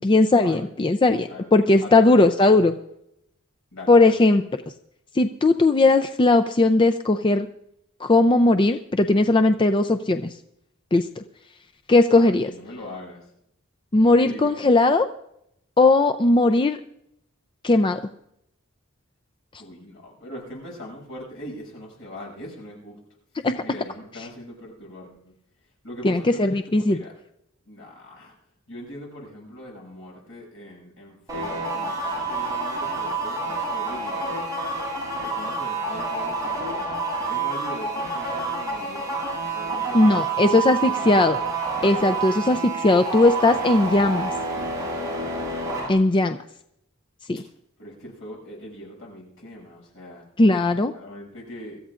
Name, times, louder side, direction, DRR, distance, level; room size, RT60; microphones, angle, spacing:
voice 1, 0.0-2.8 3.9-4.4 5.1-7.5 8.0-10.3 10.9-11.2 11.9-12.5 13.9-15.1 15.8-16.8 17.6-18.0 23.4-23.6 26.0-27.0 39.9-41.4 41.8-44.3 45.9-46.4 47.3-47.4 50.4-50.9, left 2 dB, 25° left, 8 dB, 0.5 m, -18 dB
voice 2, 1.8-2.3 3.7-4.4 12.1-13.3 14.1-14.7 19.6-23.0 23.6-25.3 25.8-27.1 27.7-28.3 28.7-34.5 35.2-36.9 37.3-39.2 39.5-41.2 45.8-46.2 47.4-47.5 47.8-50.3 50.9-51.8, equal, 65° left, -2 dB, 7.2 m, -41 dB
sound 1, 31.3-45.9, right 3 dB, 15° right, 7.3 m, -28 dB
25.0 x 14.0 x 2.5 m, 0.77 s
head